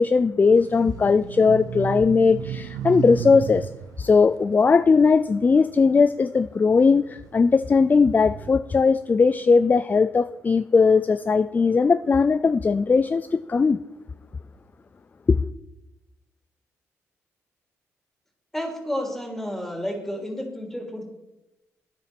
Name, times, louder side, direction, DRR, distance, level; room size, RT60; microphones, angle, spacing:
voice 1, 0.0-3.7 4.0-13.8 15.3-15.4, left 4 dB, 30° left, 0.4 m, -19 dB
sound 1, 0.6-6.1 6.6-8.5, right 7 dB, 85° right, 0.6 m, -34 dB
voice 2, 18.5-21.1, equal, 5° left, 3.1 m, -31 dB
9.5 x 9.4 x 5.9 m
cardioid pair, 75°, 6 cm